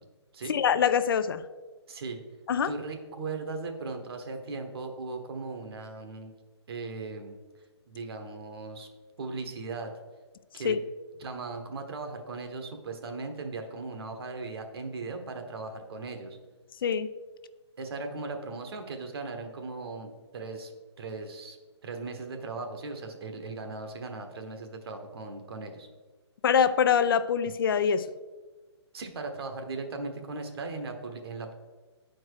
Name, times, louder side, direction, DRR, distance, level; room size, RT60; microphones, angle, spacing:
voice 1, 0.5-1.4 2.5-2.7 10.6-10.8 16.8-17.1 26.4-28.1, left 7 dB, 50° left, 13 dB, 0.4 m, -24 dB
voice 2, 1.9-2.2 2.6-6.3 6.7-7.4 7.9-8.9 9.2-9.9 10.5-10.8 11.2-16.4 17.8-20.7 21.0-21.6 21.8-25.9 28.9-31.5, right 3 dB, 55° right, 5 dB, 1.3 m, -38 dB
9.4 x 4.6 x 4.7 m, 1.3 s
hypercardioid pair, 155°, 15 cm